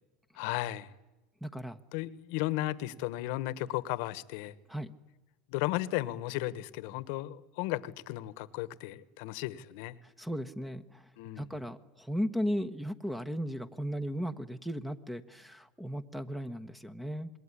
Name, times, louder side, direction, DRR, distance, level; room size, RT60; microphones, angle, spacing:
voice 1, 0.3-0.9 1.9-4.5 5.5-9.9 11.2-11.5, left 16 dB, 70° left, 1.3 m, -35 dB
voice 2, 1.4-1.8 4.7-4.9 10.0-11.0 11.4-17.3, equal, 5° right, 1.2 m, -36 dB
27.0 x 21.0 x 10.0 m
supercardioid pair, 130°, 0 cm